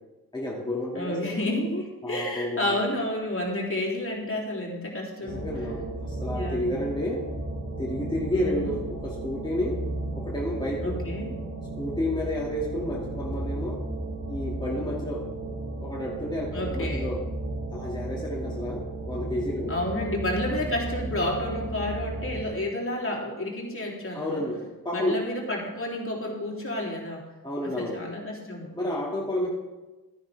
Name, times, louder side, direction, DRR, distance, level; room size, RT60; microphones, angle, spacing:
voice 1, 0.3-1.4 2.0-2.8 5.2-7.2 7.8-9.8 10.1-11.0 11.8-13.8 14.3-15.3 15.8-17.2 17.7-19.7 24.1-25.2 27.4-28.0 28.7-29.5, left 1 dB, 10° left, -4 dB, 2.6 m, -30 dB
voice 2, 1.0-5.5 5.9-6.0 6.2-6.7 8.3-8.7 10.8-11.3 16.5-17.1 19.7-24.5 24.9-27.2 27.6-28.7 29.4-29.5, left 1 dB, 35° left, -2 dB, 3.6 m, -30 dB
sound 1, 5.3-22.5, right 2 dB, 40° right, 2.1 m, -34 dB
13.0 x 10.0 x 3.6 m, 1.1 s
supercardioid pair, 50°, 40 cm